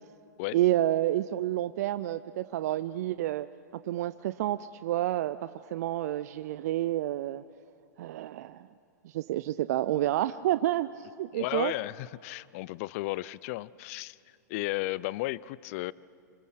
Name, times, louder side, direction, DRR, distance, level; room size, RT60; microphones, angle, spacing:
voice 1, 0.5-3.5 3.8-7.4 8.0-8.7 9.0-11.7, right 14 dB, 60° right, 13 dB, 0.6 m, -29 dB
voice 2, 11.3-14.2 14.5-15.9, left 19 dB, 50° left, 21 dB, 0.6 m, -34 dB
26.0 x 25.5 x 6.6 m, 2.3 s
hypercardioid pair, 105°, 10 cm